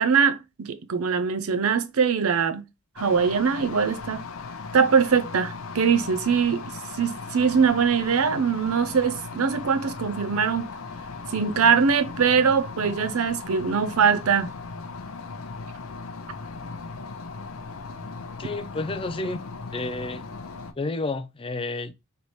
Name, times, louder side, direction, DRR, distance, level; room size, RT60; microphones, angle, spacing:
voice 1, 0.0-2.6 3.0-4.2 4.7-6.6 7.0-10.7 11.3-14.5, right 6 dB, 90° right, 0.5 m, -22 dB
sound 1, 3.0-20.7, left 4 dB, 75° left, 0.6 m, -37 dB
voice 2, 18.4-19.4 19.7-20.2 20.8-21.9, left 2 dB, 25° left, 0.4 m, -30 dB
3.3 x 3.1 x 4.1 m
head